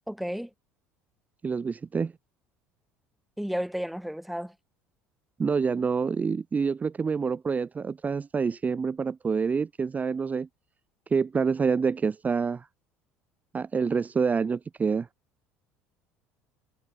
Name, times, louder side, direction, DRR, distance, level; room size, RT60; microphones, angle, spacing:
voice 1, 0.1-0.5 3.4-4.5, equal, ahead, 2.4 m, -32 dB
voice 2, 1.4-2.1 5.4-10.5 11.1-12.7 13.5-15.1, right 5 dB, 25° right, 0.5 m, -27 dB
figure-of-eight pair, 65°, 7 cm